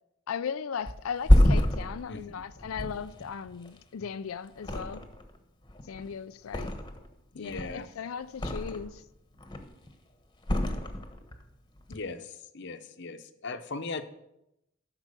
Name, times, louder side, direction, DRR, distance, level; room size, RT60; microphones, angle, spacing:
voice 1, 0.3-5.1 5.8-6.7 7.3-9.0, left 7 dB, 90° left, 0.4 m, -37 dB
Thump thud, 0.9-4.1 4.6-5.4 5.6-7.1 7.4-9.0 9.3-9.9 10.4-11.4 11.8-12.0, left 1 dB, 20° left, 1.1 m, -27 dB
voice 2, 2.1-2.4 7.3-7.9 11.9-14.0, left 3 dB, 60° left, 0.9 m, -39 dB
12.5 x 5.9 x 6.8 m
head